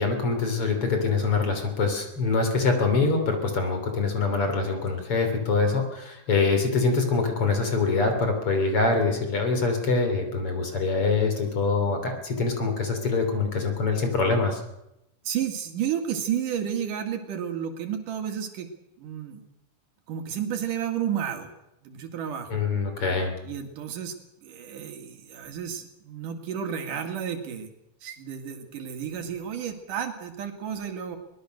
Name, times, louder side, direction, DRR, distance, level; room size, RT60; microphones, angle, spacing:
voice 1, 0.0-14.6 22.5-23.3, left 4 dB, 45° left, 5 dB, 4.1 m, -24 dB
voice 2, 15.2-18.7 19.0-19.4 20.1-21.5 21.8-22.6 23.4-24.2 24.4-27.7 28.0-31.2, right 9 dB, 85° right, 6 dB, 3.7 m, -32 dB
23.0 x 20.0 x 6.5 m, 0.86 s
omnidirectional pair, 3.6 m